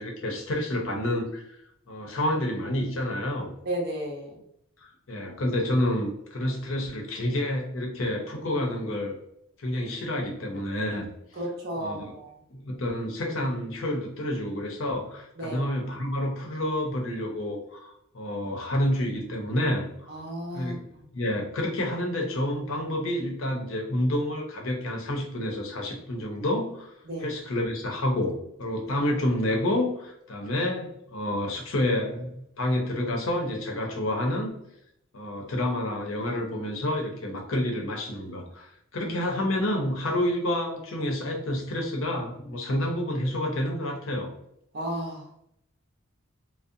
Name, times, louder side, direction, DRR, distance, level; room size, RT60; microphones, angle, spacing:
voice 1, 0.0-1.6 1.9-3.5 4.8-9.2 9.6-11.1 11.8-12.0 12.5-19.9 20.5-20.8 21.1-26.9 27.2-34.5 35.1-44.3, left 1 dB, 65° left, 1 dB, 0.6 m, -29 dB
voice 2, 3.7-4.3 11.4-12.3 15.4-15.6 20.1-20.8 27.1-27.3 39.0-39.1 44.7-45.2, right 1 dB, 50° right, -2 dB, 0.6 m, -33 dB
2.6 x 2.0 x 2.5 m, 0.75 s
head